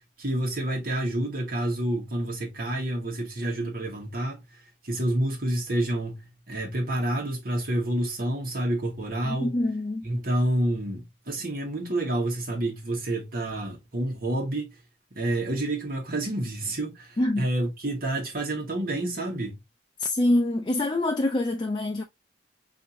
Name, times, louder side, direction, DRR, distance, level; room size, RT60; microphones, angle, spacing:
voice 1, 0.2-4.4 4.8-9.5 10.0-14.8 15.1-19.6, right 1 dB, 50° right, 1.3 m, -28 dB
voice 2, 9.2-10.1 17.2-17.5 20.0-22.0, left 1 dB, 25° left, 0.5 m, -25 dB
5.4 x 2.7 x 2.6 m
head